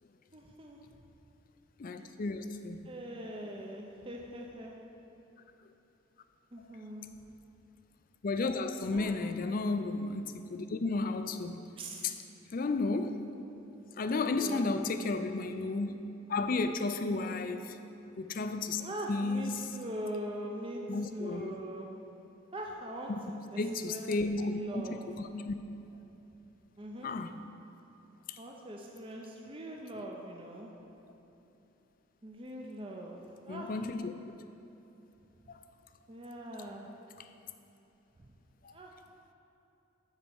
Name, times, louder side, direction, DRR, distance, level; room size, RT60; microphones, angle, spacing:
voice 1, 0.3-0.8 2.8-4.7 6.5-7.0 8.9-9.1 11.8-12.1 14.2-14.6 14.9-15.1 17.1-17.4 18.8-20.8 21.1-21.9 22.5-24.1 24.4-25.0 26.8-27.1 28.4-30.7 32.2-33.2 33.4-33.7 36.1-36.9 38.7-38.9, right 1 dB, 25° right, 0 dB, 0.6 m, -42 dB
voice 2, 1.8-3.0 3.3-3.4 8.2-11.7 12.0-12.1 12.5-13.2 14.0-16.0 16.3-17.8 18.2-18.8 19.1-19.7 20.9-21.5 23.1-23.2 23.6-25.5 27.0-27.4 28.3-28.4 33.5-34.1 35.5-35.6 37.2-37.3 38.6-38.7, left 3 dB, 45° left, 9 dB, 0.4 m, -33 dB
9.8 x 4.2 x 7.0 m, 3.0 s
head